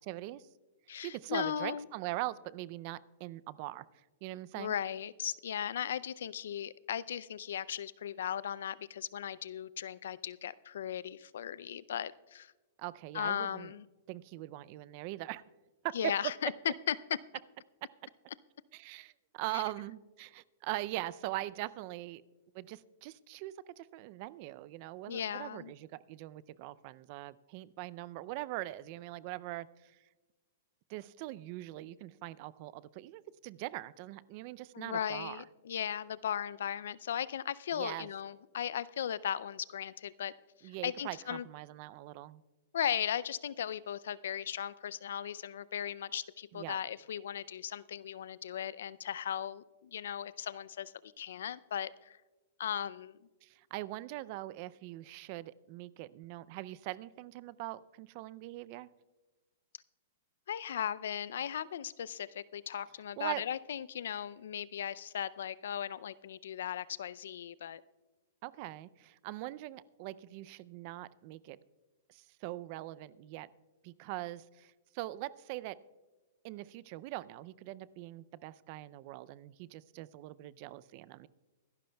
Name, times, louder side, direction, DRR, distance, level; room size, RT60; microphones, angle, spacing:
voice 1, 0.0-0.5 1.0-3.8 4.2-4.8 12.8-13.7 14.1-15.4 15.8-16.1 17.8-17.9 18.7-22.2 22.5-30.0 30.9-35.4 37.7-38.1 40.6-42.4 46.5-46.8 53.4-58.9 63.2-63.4 68.4-71.6 72.1-73.5 73.8-75.8 76.4-81.3, right 17 dB, 45° right, 19 dB, 0.4 m, -42 dB
voice 2, 0.9-1.9 4.6-12.5 13.1-13.8 15.9-16.9 19.5-19.6 25.1-25.7 34.7-40.3 40.6-41.5 42.7-52.2 52.6-53.2 60.5-67.8, left 9 dB, 75° left, 19 dB, 0.4 m, -37 dB
23.0 x 11.5 x 2.3 m, 1.2 s
hypercardioid pair, 140°, 0 cm